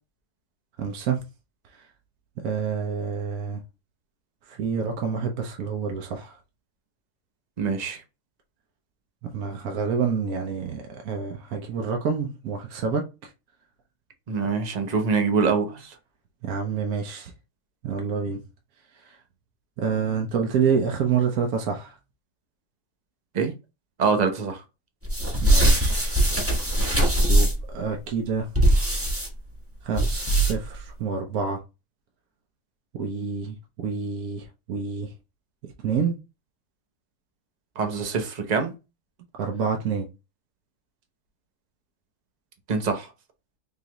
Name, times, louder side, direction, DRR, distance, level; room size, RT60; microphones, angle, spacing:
voice 1, 0.8-1.2 1.7-1.8 2.4-3.6 4.5-6.4 9.3-13.3 16.4-17.3 17.8-18.4 19.0-19.2 19.8-21.9 25.4-26.2 27.3-28.5 29.8-31.6 32.9-35.1 35.8-36.2 39.4-40.1, right 6 dB, 65° right, 1.1 m, -28 dB
voice 2, 7.6-8.0 14.3-15.9 23.3-23.5 24.0-24.6 37.8-38.7 42.7-43.1, right 5 dB, 40° right, 0.6 m, -24 dB
sound 1, 25.0-27.7 28.5-29.3 29.9-30.8, right 1 dB, 10° right, 0.8 m, -21 dB
3.9 x 3.2 x 2.9 m
omnidirectional pair, 1.8 m